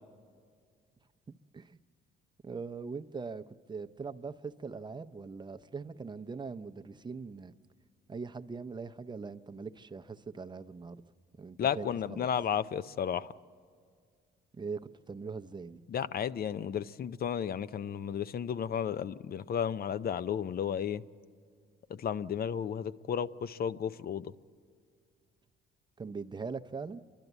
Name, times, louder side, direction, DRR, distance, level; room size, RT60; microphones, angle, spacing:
voice 1, 2.4-7.5 8.1-11.0 11.4-12.3 14.5-15.8 26.0-27.0, right 4 dB, 20° right, 8 dB, 0.6 m, -41 dB
voice 2, 11.6-13.3 15.9-21.0 21.9-24.3, left 8 dB, 50° left, 15 dB, 0.5 m, -33 dB
29.0 x 12.0 x 8.1 m, 2.1 s
cardioid pair, 90°, 20 cm